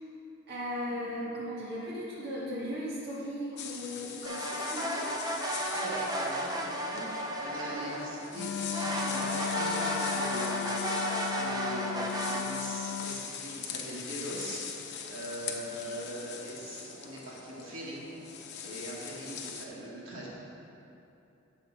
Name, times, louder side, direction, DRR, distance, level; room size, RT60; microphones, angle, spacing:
voice 1, 0.5-5.1 15.5-15.6, equal, 55° right, -8 dB, 1.7 m, -37 dB
sound 1, 3.6-19.7, left 7 dB, 60° left, 0.8 m, -42 dB
sound 2, 4.2-8.3 8.7-12.4, right 1 dB, 20° right, 0.7 m, -33 dB
voice 2, 5.4-14.6 15.1-18.0 18.6-20.3, equal, 85° right, -6 dB, 2.3 m, -41 dB
Wind instrument woodwind instrument, 8.3-13.2, left 9 dB, 75° left, 0.4 m, -36 dB
8.9 x 7.0 x 5.0 m, 2.9 s
head